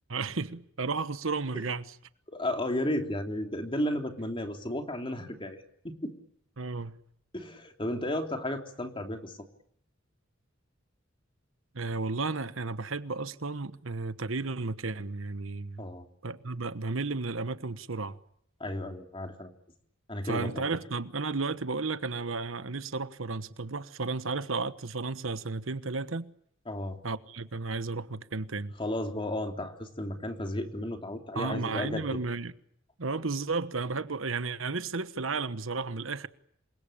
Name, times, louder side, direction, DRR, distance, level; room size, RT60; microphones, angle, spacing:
voice 1, 0.1-2.0 6.6-6.9 11.7-15.8 16.2-18.2 20.2-26.3 27.0-28.8 31.3-32.5 33.0-36.3, right 3 dB, 80° right, 1.2 m, -33 dB
voice 2, 2.3-6.1 7.3-9.4 15.8-16.1 18.6-19.5 20.1-20.7 26.7-27.0 28.8-32.2, left 1 dB, 25° left, 3.4 m, -33 dB
28.0 x 22.5 x 8.8 m
head